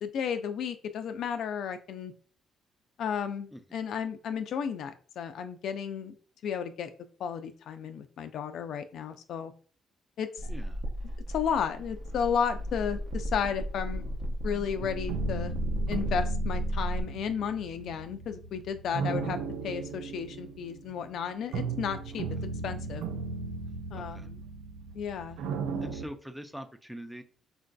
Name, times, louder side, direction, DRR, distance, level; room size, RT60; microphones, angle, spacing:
voice 1, 0.0-2.1 3.0-6.2 6.4-6.9 7.2-9.5 10.2-10.3 11.3-14.0 14.4-15.5 15.9-19.4 19.6-22.2 22.6-23.0 23.9-24.4 24.9-25.4 25.7-25.9, left 7 dB, 75° left, 9 dB, 0.3 m, -33 dB
sound 1, 10.4-17.0, right 1 dB, 55° right, 0.7 m, -33 dB
voice 2, 10.5-10.8 23.9-24.3 25.8-27.2, equal, 5° right, 8 dB, 0.4 m, -43 dB
sound 2, 14.8-26.0, right 4 dB, 90° right, 0.4 m, -36 dB
3.8 x 2.5 x 2.2 m, 0.41 s
cardioid pair, 90°, 0 cm